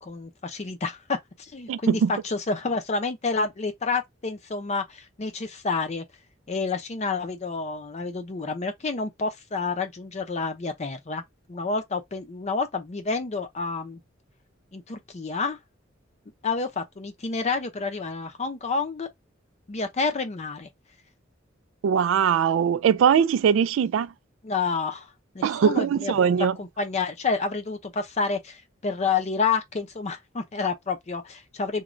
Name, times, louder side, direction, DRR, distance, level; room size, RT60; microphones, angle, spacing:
voice 1, 0.0-6.0 6.5-11.2 11.5-14.0 14.7-15.6 16.4-19.1 19.7-20.7 24.4-26.3 26.6-31.8, left 4 dB, 35° left, 0.5 m, -29 dB
voice 2, 1.7-2.1 21.8-24.1 25.4-26.6, right 7 dB, 80° right, 0.3 m, -21 dB
3.0 x 2.2 x 2.5 m
head